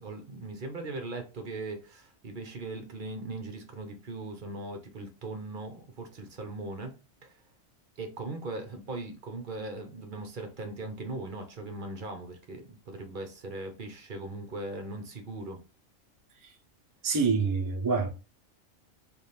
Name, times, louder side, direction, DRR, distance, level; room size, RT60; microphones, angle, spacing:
voice 1, 0.0-6.9 7.2-7.4 8.0-15.6, right 2 dB, 45° right, 0.8 m, -39 dB
voice 2, 17.0-18.1, right 4 dB, 30° right, 0.4 m, -26 dB
3.4 x 2.6 x 4.2 m
omnidirectional pair, 1.3 m